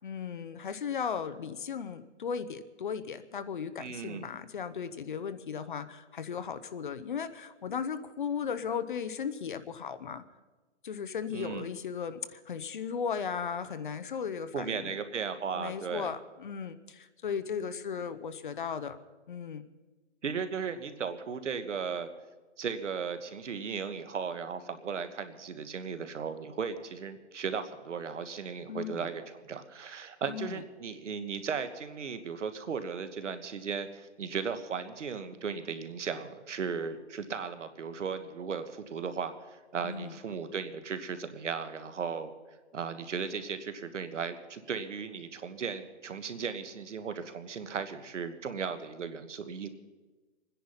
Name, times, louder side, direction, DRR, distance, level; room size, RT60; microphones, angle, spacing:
voice 1, 0.0-10.2 10.8-15.0 15.6-19.0 19.3-19.6 28.7-29.1 30.3-30.6 39.8-40.2, left 7 dB, 45° left, 11 dB, 0.8 m, -36 dB
voice 2, 3.8-4.3 11.3-11.7 14.5-16.1 20.2-22.1 22.6-42.3 42.7-49.7, right 6 dB, 80° right, 10 dB, 1.6 m, -36 dB
24.0 x 10.0 x 5.7 m, 1.3 s
hypercardioid pair, 175°, 36 cm